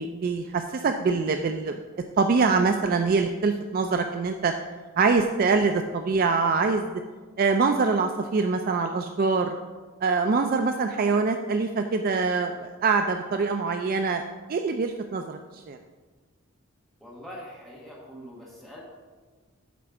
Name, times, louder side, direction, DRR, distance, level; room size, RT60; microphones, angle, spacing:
voice 1, 0.0-1.8 2.2-4.5 5.0-6.9 7.4-9.5 10.0-14.2 14.5-15.4 15.7-15.8, right 4 dB, 40° right, 6 dB, 0.3 m, -24 dB
voice 2, 17.0-18.8, equal, ahead, -6 dB, 1.4 m, -43 dB
8.3 x 4.3 x 5.9 m, 1.4 s
head